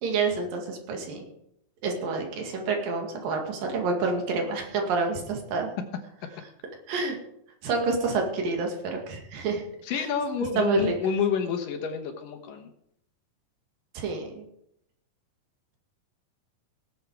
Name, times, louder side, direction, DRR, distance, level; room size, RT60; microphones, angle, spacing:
voice 1, 0.0-1.3 1.8-5.7 6.9-7.2 7.6-9.6 9.9-10.1 10.6-10.9 14.0-14.5, right 4 dB, 85° right, 2 dB, 3.8 m, -28 dB
voice 2, 9.8-12.7, left 6 dB, 80° left, 6 dB, 2.9 m, -28 dB
18.5 x 7.7 x 4.7 m, 0.76 s
omnidirectional pair, 3.9 m